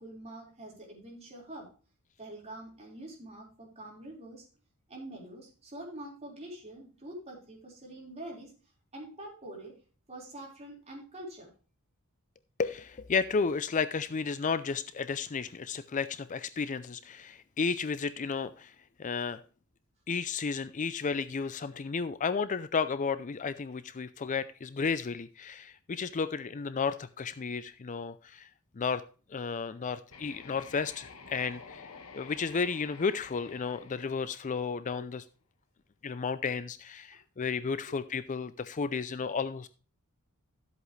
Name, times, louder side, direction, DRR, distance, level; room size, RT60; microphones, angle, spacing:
voice 1, 0.0-1.7 2.2-4.5 4.9-8.5 8.9-9.7 10.1-11.5 34.9-35.0 37.8-37.9, right 1 dB, 30° right, -2 dB, 4.6 m, -45 dB
voice 2, 12.6-18.7 19.0-19.4 20.1-28.5 28.8-29.0 29.3-35.2 36.0-39.7, left 5 dB, 35° left, 14 dB, 0.4 m, -33 dB
sound 1, 30.1-35.0, left 5 dB, 70° left, 1.4 m, -50 dB
13.5 x 8.0 x 3.2 m, 0.37 s
head